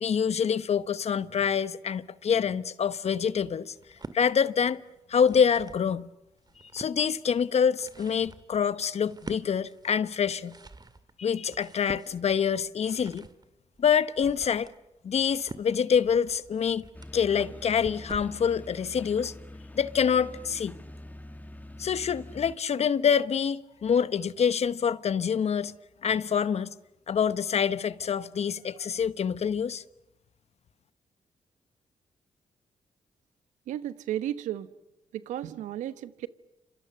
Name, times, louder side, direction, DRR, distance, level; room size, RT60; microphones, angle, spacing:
voice 1, 0.0-3.7 4.1-4.8 5.1-6.1 6.7-10.6 11.2-13.3 13.8-14.7 15.0-16.8 17.1-19.3 19.7-20.8 21.8-25.7 26.0-26.7 27.1-29.8, left 7 dB, 60° left, 1.1 m, -26 dB
sound 1, 3.8-4.2 5.0-5.9 6.3-7.0 7.6-18.4, right 3 dB, 35° right, 2.3 m, -47 dB
sound 2, 16.9-22.6, left 1 dB, 15° left, 2.0 m, -45 dB
voice 2, 33.7-34.7 35.1-36.3, right 12 dB, 85° right, 1.1 m, -33 dB
30.0 x 27.0 x 6.8 m
supercardioid pair, 50°, 12 cm